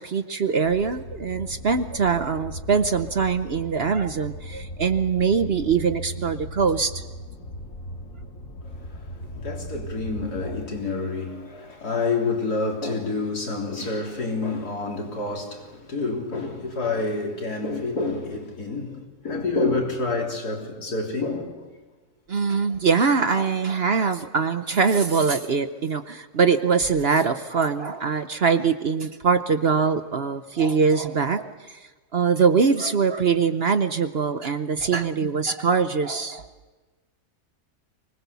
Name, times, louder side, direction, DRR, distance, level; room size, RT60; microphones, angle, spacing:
voice 1, 0.0-6.9 22.3-31.8 32.1-36.5, right 5 dB, 45° right, 0.9 m, -23 dB
sound 1, 0.6-10.7, equal, 60° left, 2.5 m, -38 dB
voice 2, 8.6-21.7, left 3 dB, 85° left, 4.0 m, -28 dB
24.5 x 20.0 x 6.9 m
omnidirectional pair, 1.6 m